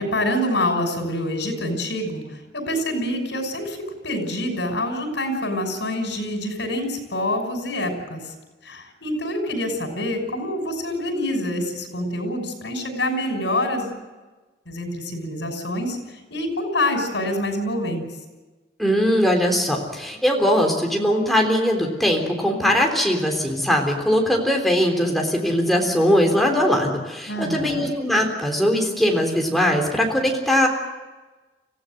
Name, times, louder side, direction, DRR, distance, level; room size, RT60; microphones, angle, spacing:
voice 1, 0.0-2.2 2.5-3.8 4.0-8.2 8.6-14.0 14.7-16.0 16.3-18.0 27.3-27.9, left 1 dB, 80° left, 4 dB, 6.2 m, -26 dB
voice 2, 18.8-30.7, equal, ahead, 1 dB, 3.5 m, -20 dB
25.5 x 16.0 x 7.8 m, 1.2 s
head